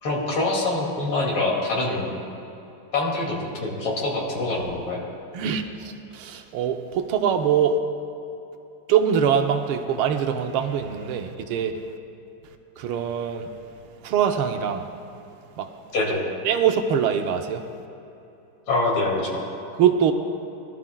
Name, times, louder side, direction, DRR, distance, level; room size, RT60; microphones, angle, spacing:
voice 1, 0.0-2.1 2.9-5.0 15.9-16.2 18.7-19.4, left 2 dB, 90° left, -3 dB, 3.2 m, -25 dB
voice 2, 5.3-7.8 8.9-11.7 12.8-13.5 14.0-14.8 15.6-15.7 16.4-17.6 19.8-20.1, right 8 dB, 85° right, 6 dB, 1.6 m, -23 dB
21.5 x 12.5 x 2.3 m, 2.9 s
omnidirectional pair, 2.3 m